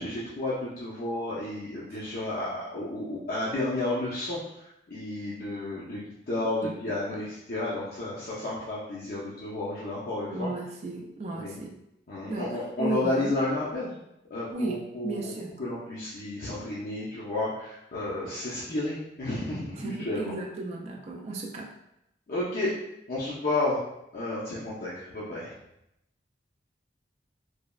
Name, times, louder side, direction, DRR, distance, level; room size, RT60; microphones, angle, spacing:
voice 1, 0.0-10.5 11.3-11.6 12.1-13.9 14.3-20.3 22.3-22.7 23.1-23.8 24.1-25.5, left 2 dB, 55° left, -8 dB, 0.5 m, -32 dB
voice 2, 10.2-11.7 12.3-12.5 12.8-13.3 14.5-15.5 19.8-21.7, right 3 dB, 35° right, -1 dB, 0.3 m, -34 dB
3.1 x 2.2 x 2.3 m, 0.83 s
head